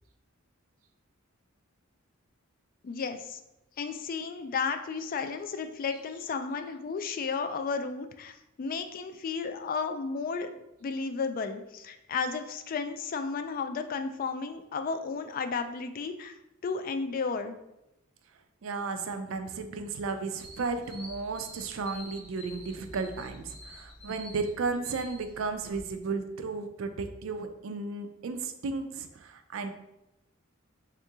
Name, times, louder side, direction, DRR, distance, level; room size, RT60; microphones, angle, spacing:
voice 1, 2.8-3.4 3.8-8.3 8.6-10.5 10.8-16.3 16.6-17.6, left 5 dB, 45° left, 8 dB, 0.3 m, -33 dB
voice 2, 18.6-29.7, right 4 dB, 75° right, 8 dB, 0.4 m, -34 dB
sound 1, 20.4-25.8, equal, 25° left, 1.1 m, -48 dB
3.7 x 2.8 x 3.5 m, 0.88 s
head